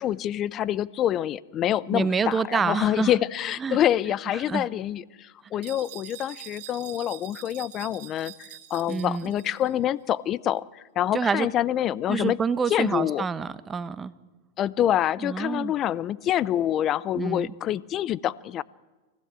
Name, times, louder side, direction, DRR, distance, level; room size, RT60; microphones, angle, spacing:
voice 1, 0.0-8.3 8.7-12.4 12.7-13.2 14.6-18.6, left 11 dB, 35° left, 0.6 m, -26 dB
voice 2, 1.9-3.1 3.6-3.8 4.3-4.7 8.9-9.3 11.1-11.5 12.1-14.1 15.2-15.7 17.1-17.5, right 5 dB, 20° right, 0.9 m, -27 dB
sound 1, 5.6-9.8, right 15 dB, 60° right, 2.3 m, -45 dB
24.0 x 15.5 x 7.6 m
hypercardioid pair, 125°, 0 cm